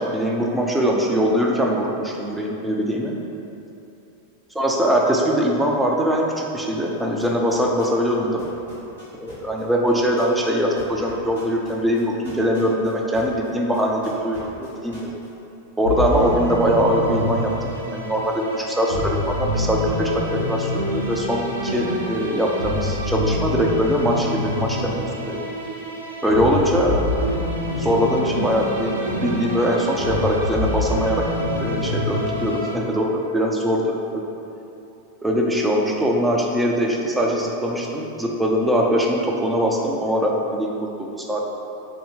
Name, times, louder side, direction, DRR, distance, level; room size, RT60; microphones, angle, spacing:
voice 1, 0.0-3.1 4.6-8.4 9.2-15.1 15.8-17.5 17.9-25.4 26.2-27.1 27.7-31.3 31.6-34.2 35.2-41.4, equal, 5° right, -1 dB, 0.5 m, -22 dB
sound 1, 7.2-8.1 8.4-13.5 13.7-15.3, left 1 dB, 75° left, 1.4 m, -44 dB
sound 2, 15.8-32.8, left 1 dB, 70° right, 0.5 m, -26 dB
3.4 x 2.7 x 4.2 m, 2.9 s
figure-of-eight pair, 90°, 0 cm